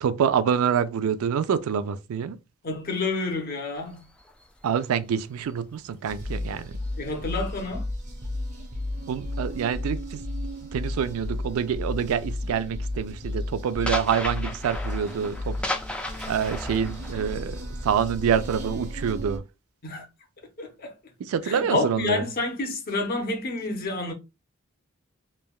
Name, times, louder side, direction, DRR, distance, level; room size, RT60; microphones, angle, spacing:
voice 1, 0.0-2.4 4.6-6.7 9.1-10.2 10.7-15.6 16.3-19.4 21.3-22.2, right 7 dB, 90° right, 0.3 m, -26 dB
voice 2, 2.6-4.1 7.0-7.9 19.8-20.1 20.6-21.0 21.4-24.1, left 3 dB, 45° left, 0.7 m, -29 dB
sound 1, 3.8-7.6 8.0-11.4 11.6-12.0 12.3-18.7, left 1 dB, 5° left, 0.3 m, -37 dB
sound 2, 6.0-19.4, left 1 dB, 35° right, 0.6 m, -33 dB
3.3 x 2.2 x 2.2 m
head